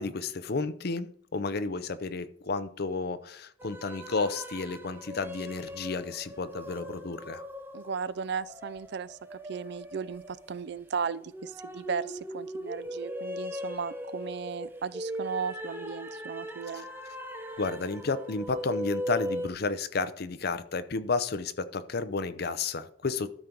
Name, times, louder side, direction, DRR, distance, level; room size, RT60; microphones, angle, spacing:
voice 1, 0.0-7.4 16.7-16.8 17.6-23.3, left 4 dB, 55° left, 13 dB, 0.6 m, -32 dB
sound 1, 3.6-19.5, equal, 10° right, 0.8 m, -39 dB
voice 2, 7.7-16.9, right 6 dB, 60° right, 18 dB, 0.4 m, -36 dB
12.5 x 5.2 x 4.5 m, 0.63 s
head